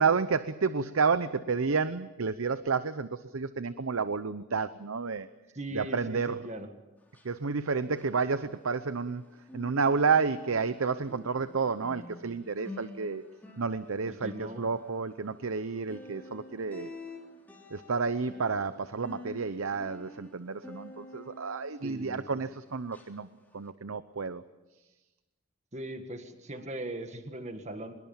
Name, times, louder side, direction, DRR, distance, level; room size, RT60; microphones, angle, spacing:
voice 1, 0.0-5.3 5.7-6.4 7.2-9.3 9.5-13.2 13.6-16.9 17.7-23.3 23.5-24.4, right 5 dB, 85° right, 13 dB, 0.8 m, -30 dB
voice 2, 5.5-6.7 14.1-14.7 21.8-22.4 25.7-27.9, right 1 dB, 35° right, 7 dB, 1.8 m, -40 dB
sound 1, 7.0-9.2 9.4-22.6 22.9-23.1 23.6-23.7, left 2 dB, 10° left, 3.6 m, -49 dB
24.0 x 22.0 x 7.3 m, 1.1 s
head